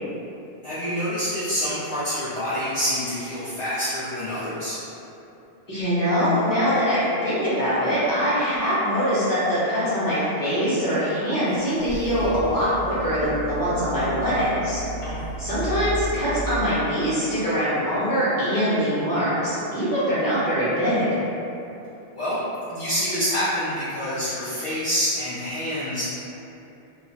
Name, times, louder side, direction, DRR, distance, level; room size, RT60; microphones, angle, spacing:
voice 1, 0.6-4.8 15.0-15.3 22.1-22.4 22.7-26.0, equal, 40° left, -13 dB, 0.4 m, -27 dB
voice 2, 5.7-14.8 15.4-21.2, equal, 20° left, -11 dB, 0.9 m, -23 dB
sound 1, 11.5-17.4, right 1 dB, 85° right, 1.0 m, -34 dB
2.4 x 2.0 x 3.9 m, 2.8 s
omnidirectional pair, 1.1 m